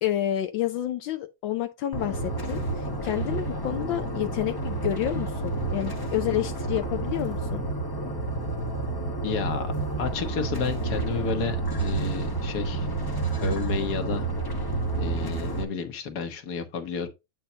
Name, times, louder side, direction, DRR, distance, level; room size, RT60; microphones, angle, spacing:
voice 1, 0.0-7.6, left 12 dB, 75° left, 1.3 m, -29 dB
sound 1, 1.9-15.6, right 3 dB, 15° left, 0.7 m, -30 dB
voice 2, 9.2-12.9 13.4-14.3 15.0-17.1, left 6 dB, 55° left, 1.6 m, -31 dB
8.4 x 5.5 x 2.8 m
omnidirectional pair, 2.2 m